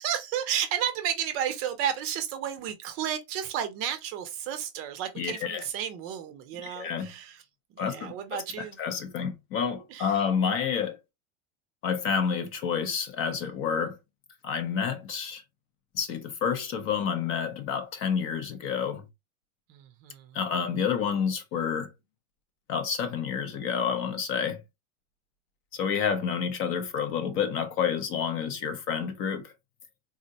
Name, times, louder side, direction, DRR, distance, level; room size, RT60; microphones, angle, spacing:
voice 1, 0.0-7.4 7.7-8.8 9.9-10.2 19.7-20.6, right 9 dB, 35° right, 0.5 m, -32 dB
voice 2, 5.2-5.6 6.6-7.1 7.8-11.0 11.8-14.0 14.4-15.4 15.9-19.0 20.3-21.9 22.7-24.6 25.7-29.5, left 7 dB, 35° left, 0.5 m, -29 dB
3.7 x 2.0 x 2.6 m
supercardioid pair, 135°, 38 cm